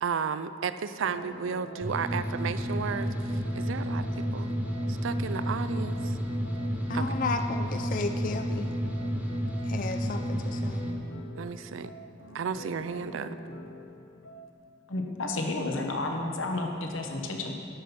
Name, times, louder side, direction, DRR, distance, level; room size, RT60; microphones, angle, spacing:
voice 1, 0.0-4.1 4.3-4.5 4.9-6.2 6.9-7.1 11.4-11.9 12.3-13.4, right 6 dB, 80° right, 12 dB, 0.4 m, -33 dB
sound 1, 1.0-14.5, right 1 dB, 60° left, 0.9 m, -45 dB
sound 2, 1.8-10.9, equal, 5° right, 1.2 m, -31 dB
voice 2, 6.9-8.7 9.6-10.8, left 3 dB, 45° left, 7 dB, 0.4 m, -33 dB
voice 3, 14.9-17.6, left 2 dB, 85° left, 2 dB, 1.0 m, -31 dB
11.5 x 5.8 x 7.0 m, 2.5 s
head